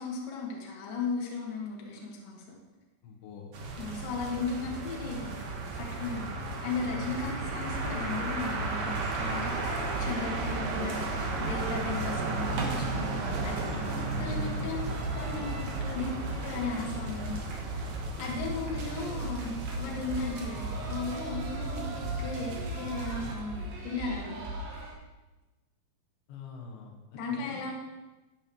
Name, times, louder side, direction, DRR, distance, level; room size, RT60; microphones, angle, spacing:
voice 1, 0.0-2.4 3.8-5.4 5.8-13.0 13.4-13.6 13.9-14.9 15.1-17.4 17.7-17.8 18.2-25.0 27.1-27.7, left 4 dB, 60° left, -2 dB, 3.2 m, -36 dB
voice 2, 3.0-3.6 14.3-14.8 18.7-19.6 26.3-27.7, left 4 dB, 90° left, -1 dB, 3.6 m, -46 dB
sound 1, 3.5-23.3, right 3 dB, 60° right, 2.0 m, -35 dB
sound 2, 7.7-24.9, right 2 dB, 90° right, 4.0 m, -38 dB
12.5 x 11.0 x 3.1 m, 1.1 s
omnidirectional pair, 4.9 m